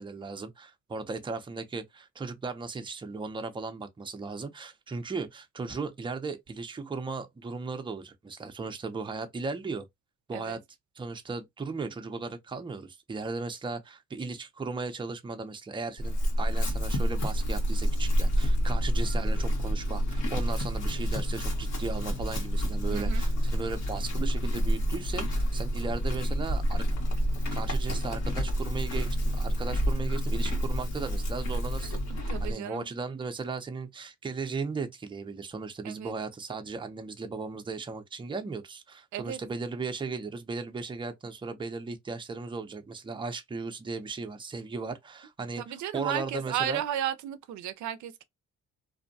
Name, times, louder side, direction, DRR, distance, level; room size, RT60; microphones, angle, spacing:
voice 1, 0.0-9.8 10.3-10.6 11.0-26.9 27.5-45.6 45.9-46.8, right 4 dB, 15° right, 0.5 m, -36 dB
Chewing mastication / Livestock farm animals working animals, 16.0-32.5, equal, 60° left, 1.2 m, -28 dB
voice 2, 22.9-23.2 32.1-32.9 35.8-36.1 39.1-39.4 45.6-48.2, right 10 dB, 70° right, 0.5 m, -34 dB
2.6 x 2.1 x 2.6 m
cardioid pair, 90°, 30 cm